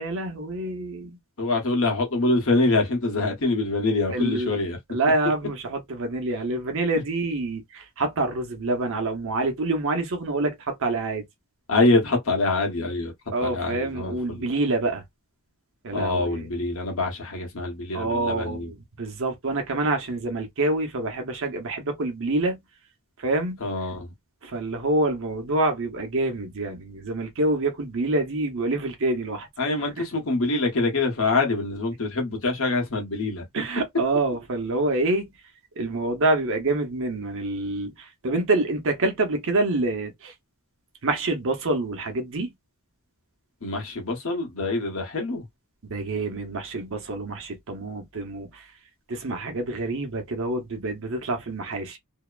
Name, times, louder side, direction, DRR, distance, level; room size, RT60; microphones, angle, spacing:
voice 1, 0.0-1.2 4.1-4.5 4.9-11.2 13.3-15.0 15.8-16.4 17.9-22.6 23.2-23.6 24.4-29.5 33.5-35.3 35.8-40.3 41.0-42.5 45.9-48.6 49.1-52.0, right 2 dB, 60° right, 0.8 m, -26 dB
voice 2, 1.4-4.8 11.7-13.1 13.4-14.4 15.9-18.7 23.6-24.1 29.6-33.4 43.6-45.5, left 2 dB, 65° left, 1.1 m, -25 dB
2.7 x 2.1 x 2.3 m
head